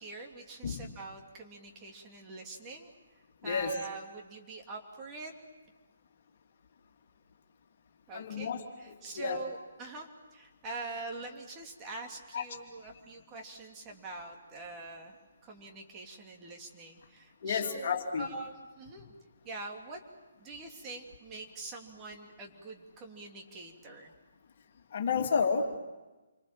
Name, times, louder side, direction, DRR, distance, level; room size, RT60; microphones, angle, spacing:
voice 1, 0.0-2.9 3.4-5.3 8.1-15.2 15.4-19.0 19.4-20.0 20.4-24.1, right 3 dB, 20° right, 1 dB, 2.9 m, -44 dB
voice 2, 3.4-3.7 8.1-8.6 9.2-9.4 12.3-12.4 17.4-18.2 24.9-25.8, left 5 dB, 45° left, 3 dB, 2.7 m, -30 dB
28.0 x 25.0 x 7.6 m, 1.2 s
figure-of-eight pair, 140°, 0 cm